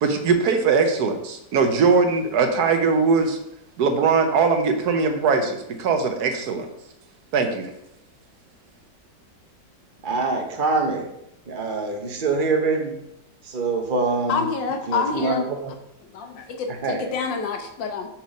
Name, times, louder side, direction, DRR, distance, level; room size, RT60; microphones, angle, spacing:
voice 1, 0.0-3.4 3.8-6.7 7.3-7.7, right 5 dB, 65° right, 6 dB, 1.3 m, -20 dB
voice 2, 10.0-11.1 11.5-13.0 13.4-14.4 14.9-15.7 16.8-17.1, right 3 dB, 45° right, 3 dB, 0.7 m, -24 dB
voice 3, 14.3-15.5 16.1-18.1, left 5 dB, 85° left, 5 dB, 1.6 m, -27 dB
5.6 x 4.5 x 5.1 m, 0.81 s
omnidirectional pair, 2.0 m